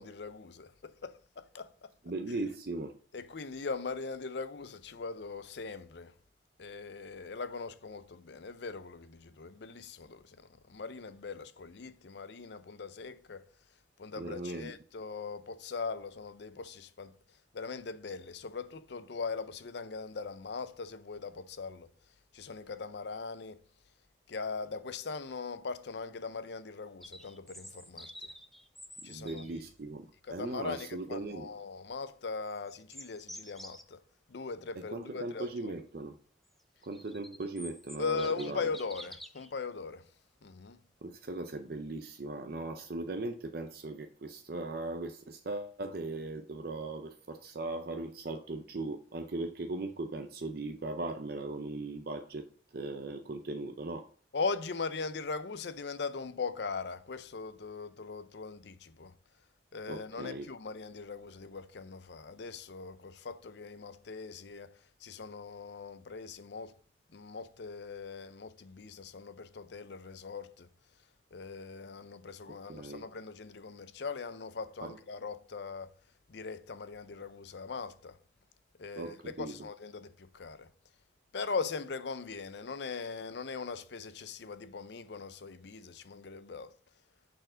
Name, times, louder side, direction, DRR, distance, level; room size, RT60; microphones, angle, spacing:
voice 1, 0.0-1.9 3.1-6.1 6.6-13.5 14.0-17.1 17.5-21.9 22.3-23.6 24.3-28.3 29.0-29.5 30.2-34.0 34.3-35.7 38.0-40.0 40.4-40.8 54.3-59.1 59.7-64.7 65.0-66.8 67.1-70.7 71.3-75.9 76.3-78.2 78.8-80.7 81.3-86.7, left 4 dB, 60° left, 0.5 m, -40 dB
voice 2, 2.1-3.0 14.2-14.7 29.1-31.5 34.8-36.2 36.8-38.6 41.0-54.1 59.9-60.5 72.5-73.1 74.8-74.9 79.0-79.5, right 2 dB, 50° right, 0.6 m, -39 dB
sound 1, 27.0-29.6 32.5-33.8 36.6-39.5, equal, ahead, 0.4 m, -49 dB
6.4 x 4.4 x 5.0 m
head